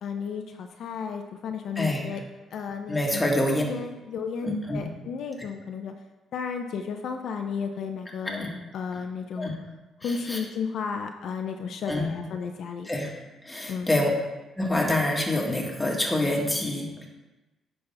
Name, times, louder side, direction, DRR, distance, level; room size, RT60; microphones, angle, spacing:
voice 1, 0.0-2.2 2.5-3.2 3.6-5.9 6.3-8.5 8.7-9.5 10.0-12.9 13.7-14.2, left 6 dB, 70° left, 5 dB, 0.6 m, -33 dB
voice 2, 1.8-2.1 2.9-3.6 4.4-4.8 8.3-8.5 9.4-9.5 10.0-10.4 11.9-12.2 12.9-13.1 13.4-14.1 14.6-17.1, left 1 dB, 10° left, -1 dB, 1.7 m, -26 dB
9.8 x 5.4 x 3.4 m, 1.1 s
cardioid pair, 90°, 0 cm